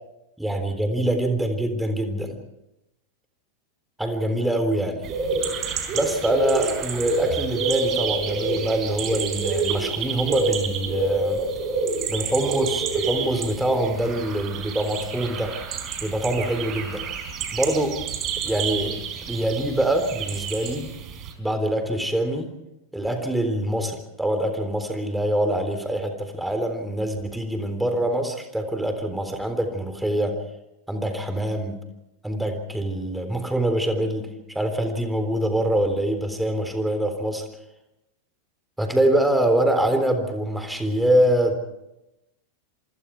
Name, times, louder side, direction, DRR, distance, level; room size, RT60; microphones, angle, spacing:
voice 1, 0.4-2.4 4.0-5.0 5.9-11.4 12.1-15.6 16.0-17.0 17.5-18.0 18.4-19.0 19.3-20.9 21.4-22.5 22.9-30.4 30.9-31.8 32.2-37.4 38.8-41.6, right 1 dB, 5° right, 6 dB, 3.7 m, -24 dB
sound 1, 5.0-21.3, right 4 dB, 30° right, 4.4 m, -28 dB
26.5 x 26.5 x 4.7 m, 0.92 s
figure-of-eight pair, 90°, 0 cm